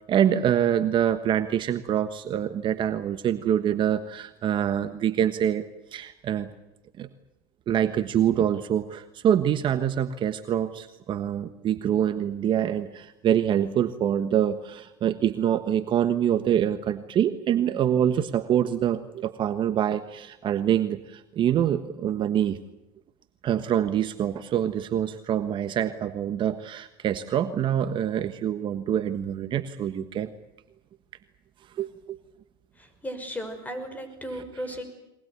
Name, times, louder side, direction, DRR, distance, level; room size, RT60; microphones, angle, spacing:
voice 1, 0.1-5.6 5.9-6.5 7.0-7.1 7.7-22.6 23.4-30.3 31.8-32.2 34.3-34.4, right 10 dB, 45° right, 10 dB, 1.4 m, -25 dB
voice 2, 32.8-34.8, equal, 15° left, 8 dB, 5.8 m, -35 dB
22.5 x 20.0 x 9.6 m, 0.89 s
supercardioid pair, 100°, 12 cm